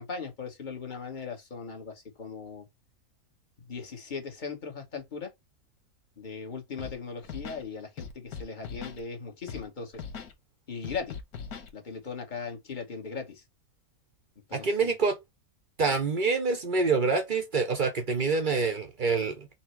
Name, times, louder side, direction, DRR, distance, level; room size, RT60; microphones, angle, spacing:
voice 1, 0.0-2.7 3.7-5.3 6.2-10.0 10.7-11.1 11.7-13.4 14.5-14.9, left 5 dB, 35° left, 1.1 m, -38 dB
Scratching (performance technique), 6.8-7.0 7.2-7.6 8.0-9.0 9.5-9.6 9.9-10.3 10.8-11.7, left 6 dB, 85° left, 1.4 m, -40 dB
voice 2, 14.5-15.2 15.8-19.5, right 4 dB, 45° right, 0.7 m, -26 dB
4.2 x 2.1 x 4.3 m
omnidirectional pair, 1.5 m